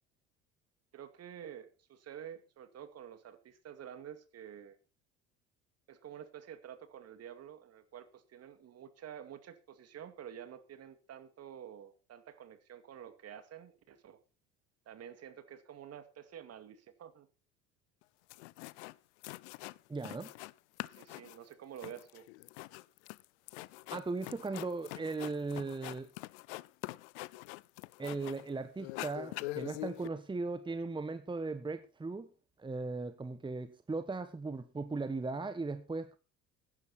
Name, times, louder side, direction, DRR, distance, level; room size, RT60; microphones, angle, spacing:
voice 1, 0.9-4.8 5.9-14.2 14.9-17.3 20.8-22.3, right 9 dB, 45° right, 2.3 m, -49 dB
sound 1, 18.0-18.1 18.3-19.0 19.2-20.5 20.8-28.5 28.8-30.1, left 22 dB, 70° left, 0.6 m, -44 dB
voice 2, 19.9-20.3 23.9-26.1 28.0-32.3 32.6-36.2, right 3 dB, 15° right, 1.2 m, -38 dB
15.5 x 11.0 x 4.2 m
hypercardioid pair, 70°, 35 cm